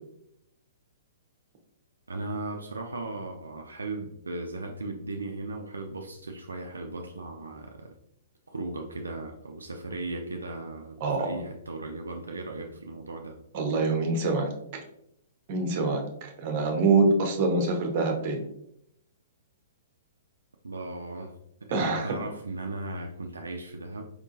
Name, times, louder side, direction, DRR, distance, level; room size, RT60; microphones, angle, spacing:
voice 1, 2.1-7.9 8.5-13.4 20.6-21.3 21.6-24.0, right 2 dB, 75° right, 2 dB, 0.4 m, -37 dB
voice 2, 11.0-11.4 13.5-14.5 15.5-18.5 21.7-22.1, right 3 dB, 40° right, 3 dB, 1.0 m, -25 dB
4.7 x 3.6 x 2.7 m, 0.77 s
figure-of-eight pair, 115°, 0 cm